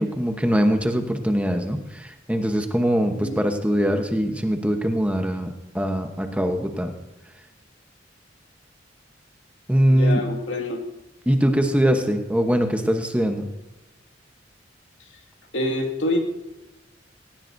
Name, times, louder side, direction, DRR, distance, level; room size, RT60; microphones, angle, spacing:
voice 1, 0.0-6.9 9.7-10.2 11.3-13.4, equal, 5° right, 5 dB, 1.0 m, -22 dB
voice 2, 9.9-10.8 15.5-16.2, left 1 dB, 80° left, 2 dB, 2.2 m, -26 dB
18.0 x 17.5 x 2.7 m, 1.0 s
head